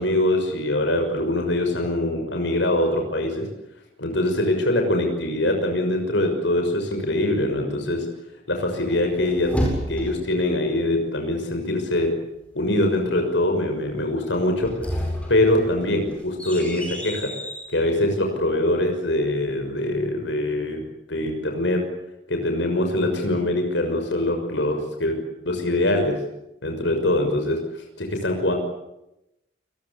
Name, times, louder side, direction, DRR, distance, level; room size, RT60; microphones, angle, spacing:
voice 1, 0.0-3.5 4.0-8.0 8.5-9.5 9.9-12.1 12.5-14.7 15.3-17.3 17.7-20.8 21.1-21.8 22.3-25.2 25.4-26.2 26.6-27.6 28.0-28.5, left 1 dB, 75° left, 4 dB, 6.2 m, -23 dB
sound 1, 8.9-10.4 14.5-17.7, equal, 5° left, 7.8 m, -30 dB
29.0 x 21.0 x 8.5 m, 0.89 s
head